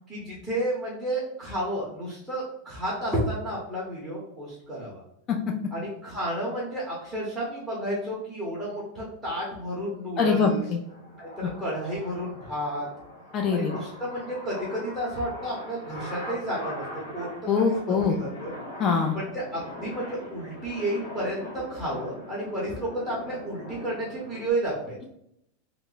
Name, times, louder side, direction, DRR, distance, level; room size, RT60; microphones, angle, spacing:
voice 1, 0.1-5.0 5.7-10.6 11.2-12.9 13.5-16.8 17.1-17.3 17.5-18.5 19.1-25.0, right 1 dB, ahead, -7 dB, 0.8 m, -31 dB
sound 1, 9.2-24.5, left 1 dB, 60° left, 0.9 m, -41 dB
voice 2, 10.2-10.8 13.3-13.7 17.5-18.2 18.8-19.1, left 5 dB, 25° left, 2 dB, 0.3 m, -23 dB
2.9 x 2.1 x 3.9 m, 0.76 s
supercardioid pair, 175°, 0 cm